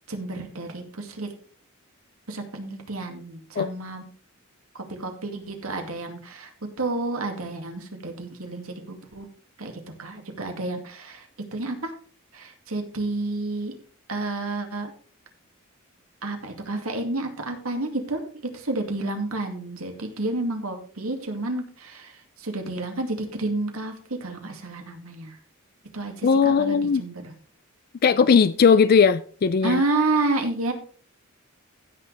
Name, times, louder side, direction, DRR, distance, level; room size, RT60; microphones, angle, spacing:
voice 1, 0.1-1.3 2.3-4.0 4.7-6.5 6.8-9.3 9.6-9.7 10.0-11.3 11.5-11.9 12.3-13.7 14.1-14.9 16.2-25.3 25.9-27.3 29.6-30.7, right 2 dB, 85° right, 2.4 m, -30 dB
voice 2, 26.2-27.0 28.0-29.8, left 6 dB, 45° left, 0.4 m, -18 dB
16.0 x 6.7 x 3.4 m
head